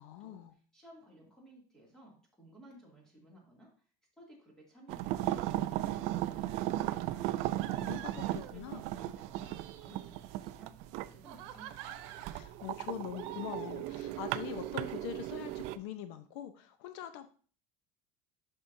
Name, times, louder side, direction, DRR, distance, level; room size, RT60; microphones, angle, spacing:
voice 1, 0.0-0.5 7.8-8.2 8.5-8.8 12.3-17.3, left 10 dB, 85° left, 9 dB, 0.8 m, -43 dB
voice 2, 0.7-3.7 4.2-5.4 5.6-7.5 7.8-12.1, right 1 dB, 5° left, -3 dB, 2.5 m, -57 dB
sound 1, 4.9-15.8, right 15 dB, 55° right, 0.4 m, -37 dB
sound 2, 6.5-7.0 7.6-8.8 9.2-10.5 11.1-12.4 13.1-14.0, right 11 dB, 80° right, 1.0 m, -49 dB
11.5 x 5.5 x 2.7 m, 0.42 s
cardioid pair, 180°, 14 cm